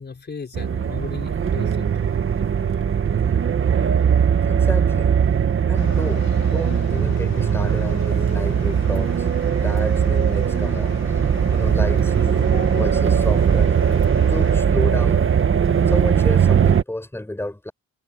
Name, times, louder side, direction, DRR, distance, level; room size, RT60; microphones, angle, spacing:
voice 1, 0.0-1.9 12.5-12.9, left 5 dB, 35° left, 5.3 m, -36 dB
sound 1, 0.5-16.8, right 7 dB, 45° right, 1.7 m, -19 dB
voice 2, 4.5-5.2 5.7-9.3 9.6-10.9 11.5-13.8 14.2-15.3 15.9-17.7, left 1 dB, 10° left, 6.8 m, -31 dB
sound 2, 5.7-14.6, left 9 dB, 60° left, 2.9 m, -40 dB
cardioid pair, 90°, 30 cm